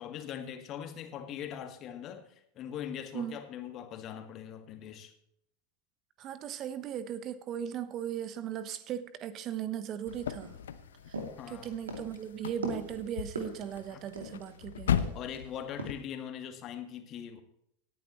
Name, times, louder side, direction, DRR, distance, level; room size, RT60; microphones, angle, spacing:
voice 1, 0.0-5.1 11.4-11.7 13.9-14.0 15.1-17.4, left 9 dB, 40° left, 1.8 m, -41 dB
voice 2, 6.2-10.6 11.1-11.2 11.5-15.1, right 9 dB, 40° right, 0.9 m, -38 dB
sound 1, 10.1-15.9, left 8 dB, 70° left, 0.7 m, -37 dB
sound 2, 10.4-14.6 15.0-15.4 15.8-16.0, right 1 dB, 80° right, 2.7 m, -40 dB
18.0 x 10.5 x 3.1 m
figure-of-eight pair, 85°, 0 cm